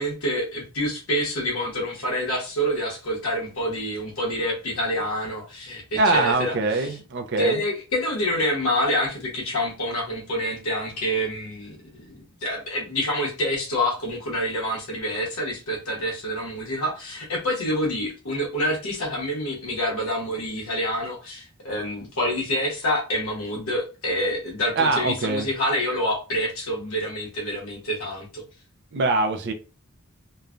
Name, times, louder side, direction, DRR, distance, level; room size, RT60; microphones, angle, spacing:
voice 1, 0.0-6.9 7.4-12.1 12.4-28.4, equal, 80° left, 1.1 m, -27 dB
voice 2, 6.0-7.6 24.8-25.4 28.9-29.5, right 3 dB, 55° right, 0.5 m, -23 dB
3.0 x 2.1 x 2.4 m
head